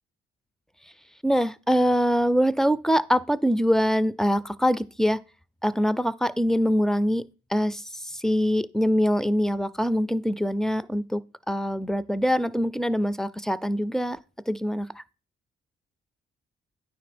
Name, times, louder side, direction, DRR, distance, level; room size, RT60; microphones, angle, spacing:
voice 1, 1.2-5.2 5.6-7.2 7.5-7.8 8.1-11.2 11.5-14.2 14.5-15.0, equal, ahead, 0.4 m, -24 dB
9.3 x 3.5 x 5.9 m
cardioid pair, 90°, 20 cm